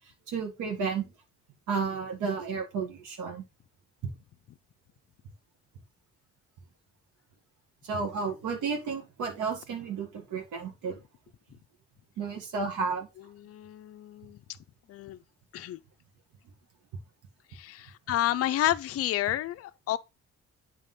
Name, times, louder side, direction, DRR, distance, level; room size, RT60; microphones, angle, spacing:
voice 1, 0.3-1.1 1.7-3.4 4.0-4.1 7.8-11.0 12.2-13.1, right 5 dB, 85° right, 1.8 m, -32 dB
voice 2, 13.4-14.4 14.9-15.2 15.5-15.8 17.5-20.0, left 13 dB, 50° left, 0.5 m, -30 dB
8.1 x 3.5 x 5.5 m
cardioid pair, 90°, 30 cm